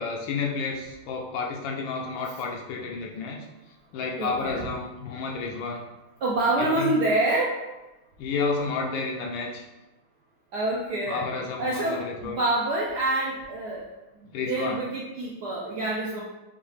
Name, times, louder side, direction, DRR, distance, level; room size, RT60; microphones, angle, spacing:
voice 1, 0.0-3.5 3.9-5.8 6.5-6.9 8.2-9.6 11.1-12.4 14.3-14.8, left 4 dB, 75° left, 0 dB, 1.2 m, -31 dB
voice 2, 4.2-4.7 6.2-7.6 10.5-11.3 11.6-13.9 14.2-16.2, right 2 dB, 75° right, -4 dB, 0.9 m, -27 dB
5.8 x 2.4 x 3.2 m, 1.0 s
omnidirectional pair, 2.4 m